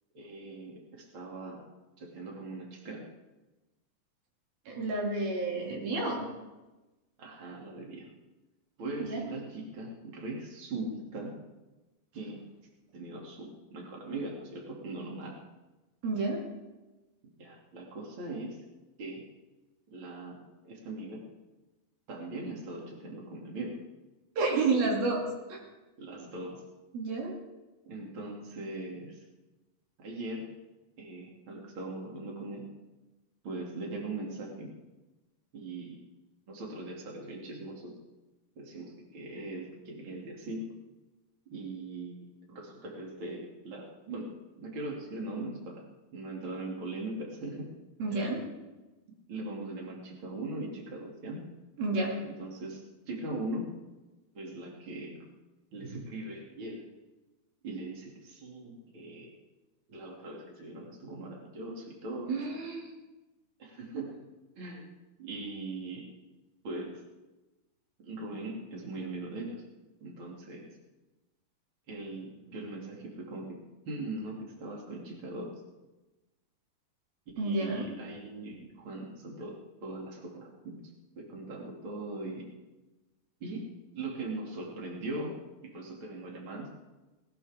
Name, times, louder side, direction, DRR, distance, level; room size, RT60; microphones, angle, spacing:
voice 1, 0.1-1.7 2.0-3.0 7.2-8.1 8.8-11.3 12.1-12.4 12.9-15.4 17.4-18.6 19.0-19.2 19.9-21.2 22.1-23.7 26.0-26.6 27.9-29.2 30.0-30.4 31.0-32.6 33.4-34.7 35.5-36.0 36.5-37.9 38.6-40.7 41.5-44.3 44.6-45.8 46.1-47.7 48.1-48.2 49.3-51.4 52.2-52.8 53.1-53.7 54.3-55.2 55.7-56.8 57.6-59.3 59.9-62.3 63.6-64.2 64.6-64.9 65.2-66.1 66.6-67.0 68.0-69.6 70.0-70.7 71.9-75.5 77.3-79.5 79.8-80.8 81.2-82.5 83.4-83.6 83.9-85.4 85.6-86.7, right 2 dB, 35° right, -2 dB, 3.1 m, -40 dB
voice 2, 4.7-6.3 9.0-9.2 16.0-16.4 24.4-25.2 25.5-25.6 26.9-27.3 48.0-48.4 51.8-52.2 62.3-63.0 77.4-77.9, right 3 dB, 85° right, -1 dB, 4.5 m, -30 dB
19.0 x 18.5 x 3.6 m, 1.1 s
omnidirectional pair, 4.1 m